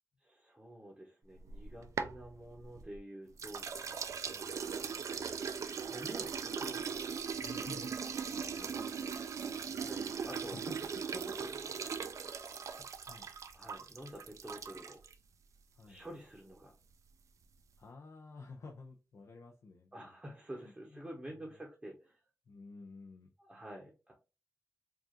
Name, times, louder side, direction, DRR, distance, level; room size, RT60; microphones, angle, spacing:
voice 1, 0.2-3.8 4.5-4.9 5.8-7.0 8.5-8.9 9.7-10.6 11.1-11.8 13.5-15.0 15.9-16.7 19.9-22.2 23.4-24.1, right 1 dB, 15° right, -2 dB, 0.8 m, -49 dB
sound 1, 1.4-3.0 3.4-15.1, right 6 dB, 75° right, 0.4 m, -39 dB
voice 2, 7.4-8.0 8.3-8.8 10.5-10.9 12.8-13.3 15.7-16.0 17.8-20.1 20.6-21.0 22.5-23.3, left 3 dB, 70° left, 2 dB, 0.6 m, -52 dB
4.7 x 2.5 x 2.9 m, 0.31 s
wide cardioid pair, 175°, 5 cm